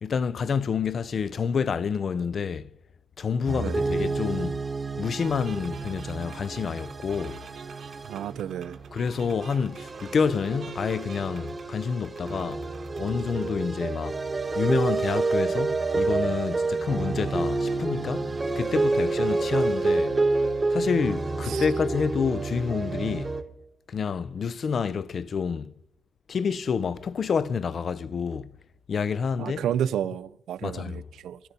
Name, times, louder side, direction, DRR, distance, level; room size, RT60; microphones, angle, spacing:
voice 1, 0.0-2.7 3.2-4.6 5.0-7.5 8.9-12.6 13.0-14.2 14.6-20.2 20.7-23.3 23.9-25.7 26.3-28.5 28.9-29.6 30.6-31.0, left 6 dB, 50° left, 0.5 m, -28 dB
sound 1, 3.5-23.4, right 3 dB, 25° right, 1.0 m, -29 dB
sound 2, 5.0-13.5, right 6 dB, 60° right, 1.3 m, -48 dB
voice 2, 8.0-8.8 21.5-21.7 29.4-31.4, right 10 dB, 85° right, 0.5 m, -31 dB
13.5 x 12.0 x 5.3 m
cardioid pair, 115°, 0 cm